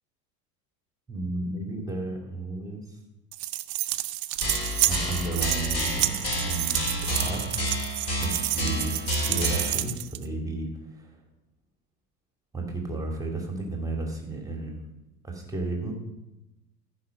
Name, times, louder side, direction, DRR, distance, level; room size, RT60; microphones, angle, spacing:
voice 1, 1.1-2.8 4.8-6.8 7.1-7.7 8.0-11.1 12.5-14.8 15.2-15.9, right 2 dB, 5° right, 1 dB, 2.5 m, -33 dB
sound 1, 3.3-10.2, right 16 dB, 40° right, 0.6 m, -29 dB
sound 2, 4.4-9.7, left 1 dB, 30° left, 4.4 m, -30 dB
14.0 x 5.3 x 5.9 m, 0.95 s
figure-of-eight pair, 80°, 48 cm